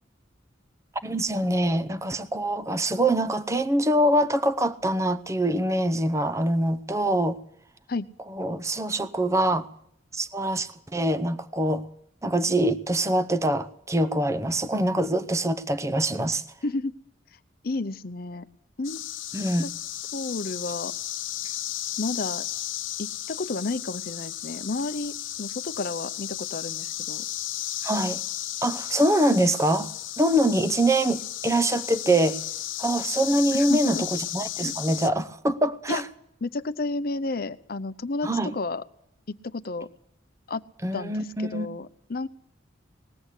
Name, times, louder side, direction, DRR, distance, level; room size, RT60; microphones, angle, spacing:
voice 1, 1.0-7.4 8.3-9.7 10.1-11.9 12.2-16.4 19.3-19.6 27.8-28.2 28.6-32.4 32.8-36.0 38.2-38.5 40.8-41.7, right 1 dB, 15° right, 0.7 m, -24 dB
voice 2, 16.6-16.9 17.6-18.5 18.8-19.0 19.6-19.7 20.1-20.9 22.0-22.5 23.0-27.3 33.5-34.0 35.9-36.0 36.4-38.8 39.3-39.9 40.5-40.6 40.9-42.3, left 3 dB, 50° left, 0.7 m, -31 dB
sound 1, 18.8-35.1, left 13 dB, 85° left, 0.9 m, -34 dB
20.0 x 16.0 x 8.2 m
head